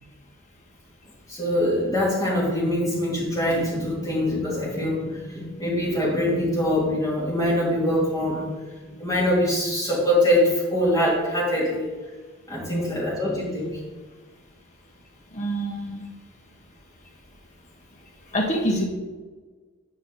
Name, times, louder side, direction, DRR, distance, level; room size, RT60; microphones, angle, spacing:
voice 1, 1.3-8.5 8.8-11.9 12.5-13.8, left 1 dB, 15° left, -6 dB, 2.6 m, -23 dB
voice 2, 15.3-16.0 18.3-18.8, equal, 30° left, 0 dB, 1.1 m, -26 dB
9.2 x 5.1 x 4.1 m, 1.3 s
head